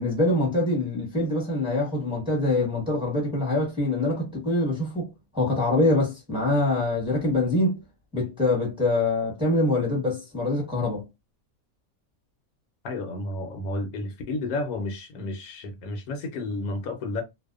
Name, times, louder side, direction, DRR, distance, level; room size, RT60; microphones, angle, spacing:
voice 1, 0.0-7.8 8.1-11.0, left 2 dB, 5° right, 0.9 m, -24 dB
voice 2, 12.8-17.2, left 2 dB, 75° left, 1.1 m, -31 dB
2.6 x 2.1 x 2.3 m
omnidirectional pair, 1.6 m